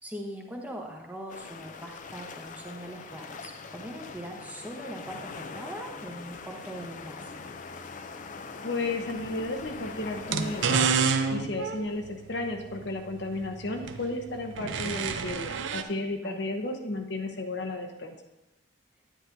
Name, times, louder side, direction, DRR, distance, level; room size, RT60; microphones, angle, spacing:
voice 1, 0.0-7.5 16.2-16.4, equal, 10° right, 1 dB, 0.9 m, -41 dB
sound 1, 1.3-10.9, left 4 dB, 40° left, 0.4 m, -42 dB
voice 2, 8.6-18.1, left 2 dB, 60° left, 3 dB, 0.8 m, -33 dB
sound 2, 9.2-9.3 10.1-15.8, right 5 dB, 80° right, 0.5 m, -29 dB
10.0 x 9.4 x 2.6 m, 0.99 s
head